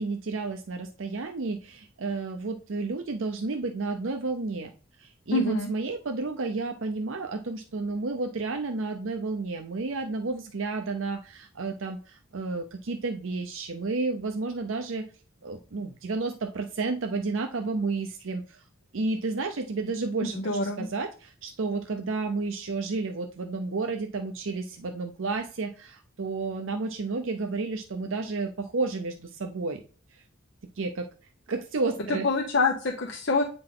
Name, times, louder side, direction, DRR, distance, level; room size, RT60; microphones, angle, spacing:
voice 1, 0.0-4.7 5.0-15.1 15.4-18.6 18.9-29.8 30.1-30.2 30.8-31.1 31.5-32.3, right 3 dB, 90° right, 5 dB, 0.7 m, -31 dB
voice 2, 5.3-5.7 20.3-20.9 32.2-33.4, left 3 dB, 65° left, 1 dB, 0.9 m, -25 dB
8.8 x 3.9 x 3.8 m, 0.39 s
head